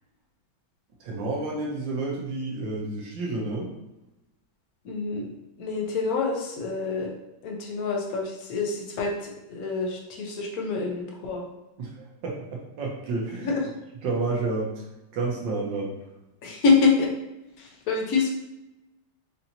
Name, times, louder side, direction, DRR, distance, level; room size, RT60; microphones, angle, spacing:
voice 1, 1.0-3.7 11.8-13.5 14.0-14.8 15.1-15.9, right 3 dB, 70° right, -2 dB, 1.5 m, -30 dB
voice 2, 4.8-5.3 5.6-7.1 7.4-11.4 13.4-13.7 16.4-17.1 17.6-18.3, left 4 dB, 60° left, 0 dB, 1.1 m, -26 dB
5.3 x 2.7 x 2.8 m, 0.96 s
omnidirectional pair, 2.1 m